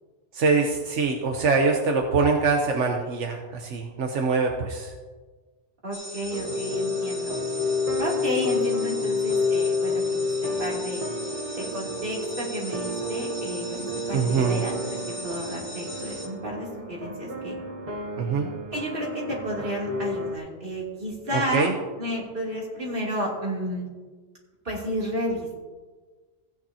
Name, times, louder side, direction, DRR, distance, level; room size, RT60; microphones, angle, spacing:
voice 1, 0.3-4.9 14.1-14.6 18.2-18.5 21.3-21.7, right 4 dB, 85° right, 2 dB, 1.2 m, -24 dB
voice 2, 5.8-7.4 8.0-11.0 11.5-15.0 15.2-17.6 18.7-21.7 22.0-23.9 24.6-25.5, equal, 50° right, -4 dB, 3.0 m, -32 dB
sound 1, 5.9-16.3, left 1 dB, 70° right, 1.8 m, -40 dB
sound 2, 6.3-20.4, left 3 dB, 35° right, 1.0 m, -30 dB
16.0 x 9.3 x 2.8 m, 1.3 s
omnidirectional pair, 1.2 m